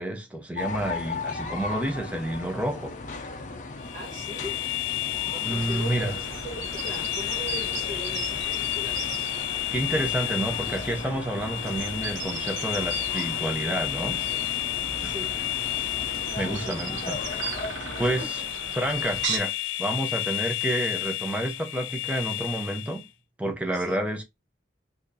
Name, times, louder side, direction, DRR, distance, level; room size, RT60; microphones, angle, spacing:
voice 1, 0.0-2.9 5.4-6.2 9.7-14.2 15.0-15.1 16.3-17.2 17.6-18.2 18.8-19.5 19.8-23.1 23.4-24.2, right 1 dB, 5° right, 0.7 m, -29 dB
sound 1, 0.6-18.2, left 3 dB, 40° left, 0.6 m, -38 dB
sound 2, 3.8-23.1, left 17 dB, 90° left, 0.4 m, -31 dB
voice 2, 3.9-4.6 5.3-9.1 15.0-15.3 16.4-16.8 18.0-18.5 23.7-24.2, equal, 45° right, 1.5 m, -40 dB
sound 3, 5.4-19.4, right 5 dB, 90° right, 0.7 m, -38 dB
4.2 x 2.6 x 2.5 m
head